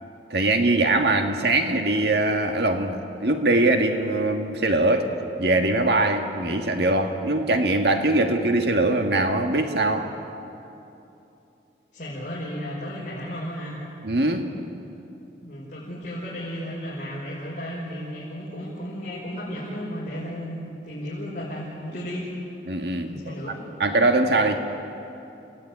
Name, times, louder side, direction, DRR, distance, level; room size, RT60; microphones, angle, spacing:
voice 1, 0.3-5.1 5.4-10.1 14.0-14.5 22.7-23.3 23.8-24.6, right 2 dB, 70° right, 5 dB, 1.8 m, -22 dB
voice 2, 11.9-13.8 15.4-22.3 23.0-23.6, equal, 45° left, -8 dB, 5.8 m, -34 dB
29.5 x 17.0 x 9.7 m, 2.8 s
head